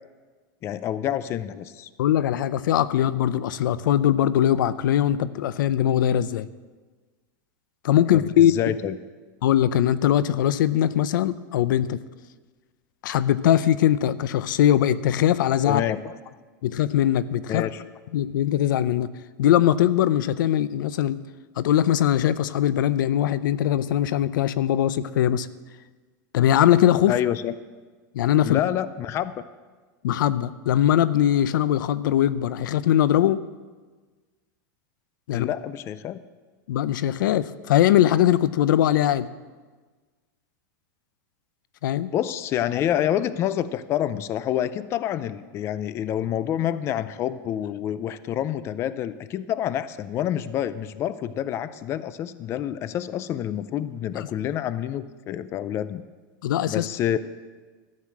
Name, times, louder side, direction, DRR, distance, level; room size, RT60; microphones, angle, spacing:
voice 1, 0.6-1.9 8.1-9.0 15.7-16.1 17.5-17.8 27.1-27.5 28.4-29.4 35.3-36.2 42.1-56.0 56.7-57.2, left 11 dB, 25° left, 15 dB, 0.4 m, -28 dB
voice 2, 2.0-6.5 7.8-8.5 9.4-12.0 13.0-15.8 16.6-17.6 18.1-19.1 19.4-21.2 21.6-25.5 26.3-27.1 28.1-28.6 30.0-33.4 35.3-35.5 36.7-39.3 41.8-42.1 54.2-54.3 56.4-56.9, left 11 dB, 85° left, 17 dB, 0.5 m, -21 dB
13.5 x 6.5 x 7.4 m, 1.4 s
supercardioid pair, 155°, 10 cm